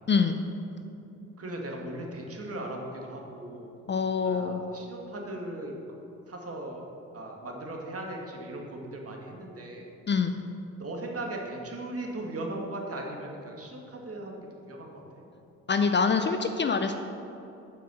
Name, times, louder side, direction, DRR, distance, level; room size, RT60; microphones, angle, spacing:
voice 1, 0.1-0.4 3.9-4.6 10.1-10.4 15.7-17.0, left 5 dB, 30° left, 7 dB, 0.6 m, -25 dB
voice 2, 1.4-3.7 4.2-5.8 6.3-6.8 7.1-9.9 10.8-15.2, right 1 dB, 40° right, 0 dB, 2.0 m, -38 dB
7.4 x 6.0 x 7.0 m, 2.8 s
supercardioid pair, 60°, 36 cm